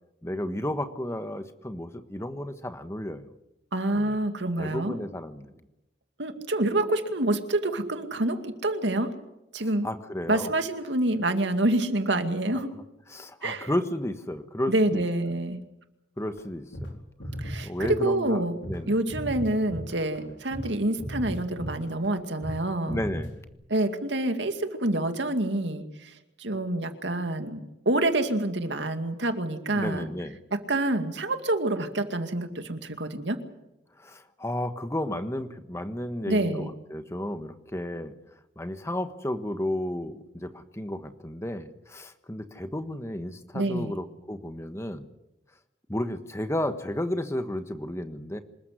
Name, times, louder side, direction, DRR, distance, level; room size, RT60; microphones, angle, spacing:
voice 1, 0.2-3.2 3.9-4.1 4.6-5.5 9.8-10.5 13.1-15.0 16.2-17.0 17.6-18.4 18.7-19.0 20.2-20.4 22.9-23.4 29.7-30.4 34.0-38.1 38.6-45.1 45.9-48.4, left 1 dB, 15° left, 9 dB, 1.4 m, -32 dB
voice 2, 3.7-5.0 6.2-9.1 9.5-9.9 10.3-12.7 13.4-13.7 14.7-15.6 17.4-18.6 18.9-23.0 23.7-26.1 26.4-30.1 30.5-33.4 36.3-36.7 43.5-43.9, right 1 dB, 85° right, 7 dB, 2.3 m, -27 dB
sound 1, 16.4-16.5 16.7-16.9 17.2-18.3 18.6-18.8 19.1-20.2 20.5-20.7 21.0-22.1 22.4-22.6 22.9-23.5, equal, 90° left, 4.4 m, -36 dB
26.5 x 14.5 x 9.7 m, 0.93 s
head